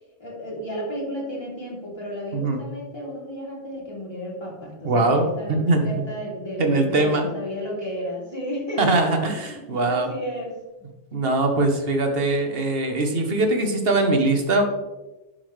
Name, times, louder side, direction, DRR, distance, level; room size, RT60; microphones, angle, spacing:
voice 1, 0.2-10.6, equal, 20° left, -6 dB, 3.1 m, -33 dB
voice 2, 4.8-5.9 6.6-7.3 8.8-10.1 11.1-14.7, right 2 dB, 55° right, 4 dB, 1.4 m, -21 dB
11.5 x 5.7 x 3.3 m, 1.1 s
omnidirectional pair, 1.2 m